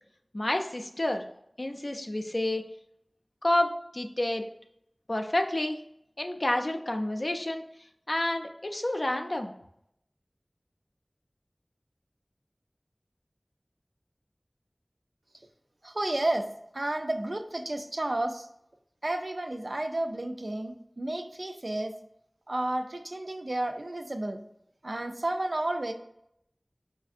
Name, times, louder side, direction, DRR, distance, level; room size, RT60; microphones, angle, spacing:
voice 1, 0.3-1.2 1.6-2.6 3.4-4.4 5.1-5.8 6.2-7.6 8.1-9.5, left 1 dB, 60° left, 4 dB, 0.4 m, -29 dB
voice 2, 15.8-16.5 16.7-18.5 19.0-21.9 22.5-24.4 24.8-25.9, right 1 dB, 70° right, 6 dB, 0.3 m, -31 dB
4.9 x 2.6 x 2.4 m, 0.76 s
wide cardioid pair, 45°, 0 cm